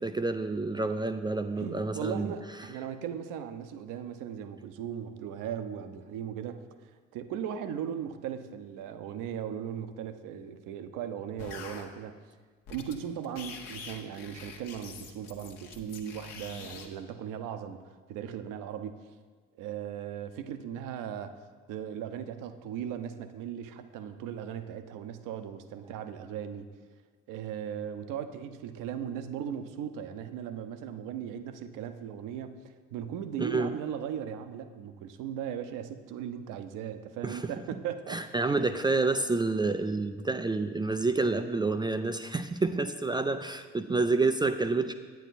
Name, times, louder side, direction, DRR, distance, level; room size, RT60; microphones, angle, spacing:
voice 1, 0.0-2.3 33.4-33.7 37.2-37.5 38.1-44.9, right 3 dB, 10° right, 8 dB, 0.4 m, -28 dB
voice 2, 1.6-12.1 12.7-17.8 18.1-19.0 19.6-21.4 21.7-26.7 27.3-38.2, right 9 dB, 55° right, 10 dB, 0.8 m, -38 dB
sound 1, 11.4-11.8 12.7-13.0 13.2-16.9, left 6 dB, 60° left, 1.3 m, -45 dB
9.4 x 9.0 x 4.1 m, 1.5 s
figure-of-eight pair, 55°, 37 cm